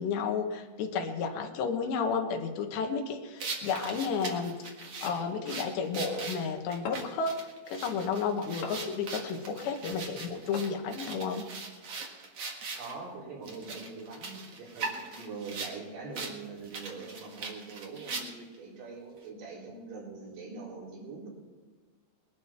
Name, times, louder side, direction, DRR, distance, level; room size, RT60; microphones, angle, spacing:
voice 1, 0.0-4.6 5.0-11.5, left 5 dB, 75° left, 4 dB, 3.4 m, -32 dB
plastic-hose-handling, 3.4-12.9 13.4-15.8 16.1-16.3 16.6-18.6, right 4 dB, 50° right, 1.8 m, -40 dB
sound 1, 5.1-5.4 6.9-7.3 8.6-9.0 10.5-10.9, left 5 dB, 60° left, 2.7 m, -40 dB
voice 2, 12.8-21.3, right 4 dB, 80° right, -4 dB, 6.4 m, -43 dB
21.0 x 11.5 x 4.4 m, 1.5 s
omnidirectional pair, 5.2 m